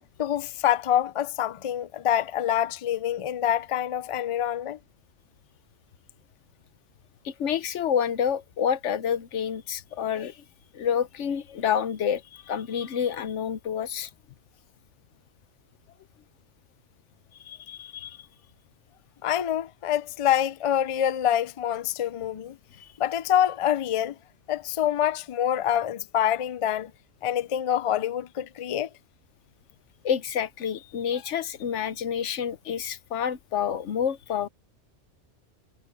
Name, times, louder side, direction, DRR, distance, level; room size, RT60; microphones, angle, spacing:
voice 1, 0.2-4.8 19.2-22.6 23.0-24.2 24.5-26.9 27.2-28.9, left 10 dB, 45° left, 0.4 m, -26 dB
voice 2, 7.2-10.4 10.7-14.1 17.4-18.3 22.8-22.9 30.0-34.5, left 8 dB, 90° left, 1.1 m, -28 dB
omnidirectional pair, 1.2 m